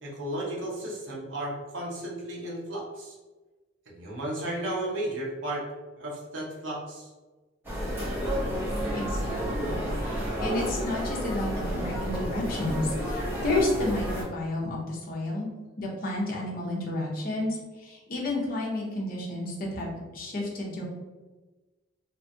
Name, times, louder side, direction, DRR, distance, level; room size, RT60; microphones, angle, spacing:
voice 1, 0.0-3.1 3.9-5.6 6.0-7.1, right 1 dB, 65° right, -3 dB, 0.8 m, -34 dB
sound 1, 7.6-14.2, equal, 10° right, 0.9 m, -30 dB
voice 2, 8.9-15.5 15.8-20.8, left 2 dB, 45° left, -3 dB, 0.7 m, -31 dB
2.8 x 2.4 x 2.6 m, 1.2 s
head